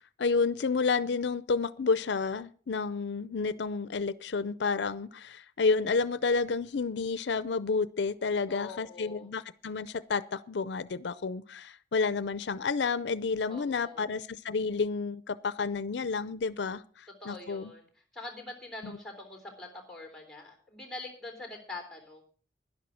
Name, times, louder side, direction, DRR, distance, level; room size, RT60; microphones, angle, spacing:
voice 1, 0.2-17.7 18.8-18.9, left 4 dB, 85° left, 17 dB, 0.5 m, -30 dB
voice 2, 8.5-9.3 13.5-14.1 17.2-17.8 18.1-22.2, left 2 dB, ahead, 4 dB, 3.5 m, -44 dB
11.0 x 10.5 x 6.0 m, 0.41 s
head